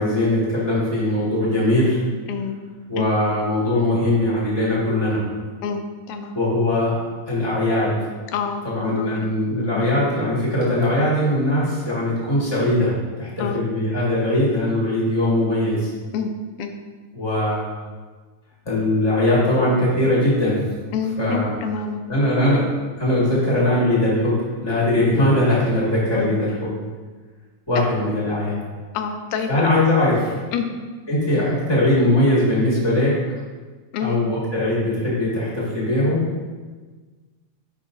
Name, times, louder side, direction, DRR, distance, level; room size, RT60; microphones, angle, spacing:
voice 1, 0.0-2.0 2.9-5.2 6.3-6.9 7.3-7.9 8.6-15.9 17.1-17.7 18.6-20.6 21.2-21.5 22.1-22.6 23.0-26.7 27.7-28.6 29.5-30.3 31.1-33.1 34.0-36.2, left 1 dB, 20° left, -7 dB, 0.6 m, -20 dB
voice 2, 5.6-6.4 8.3-9.4 9.8-9.9 13.4-13.6 16.1-16.3 16.6-16.7 20.9-22.0 26.1-26.5 28.9-29.6 30.5-30.7 33.9-34.2, left 6 dB, 80° left, 5 dB, 2.1 m, -27 dB
8.4 x 5.4 x 2.6 m, 1.4 s
omnidirectional pair, 3.6 m